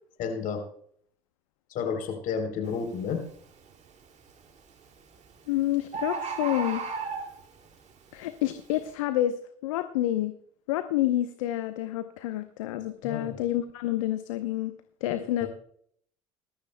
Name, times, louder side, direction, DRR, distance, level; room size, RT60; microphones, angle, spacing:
voice 1, 0.2-0.6 1.7-3.2 13.0-13.3 15.1-15.5, left 6 dB, 55° left, 5 dB, 3.5 m, -31 dB
Bird, 2.7-2.9 3.4-3.9 4.9-5.0 5.3-5.4 5.6-5.7 5.9-7.6 8.2-8.3, right 4 dB, 45° right, 2.4 m, -33 dB
voice 2, 5.5-6.8 8.1-10.3 10.7-14.7 15.0-15.5, left 13 dB, 80° left, 10 dB, 0.8 m, -28 dB
21.0 x 13.0 x 2.2 m, 0.63 s
hypercardioid pair, 65°, 17 cm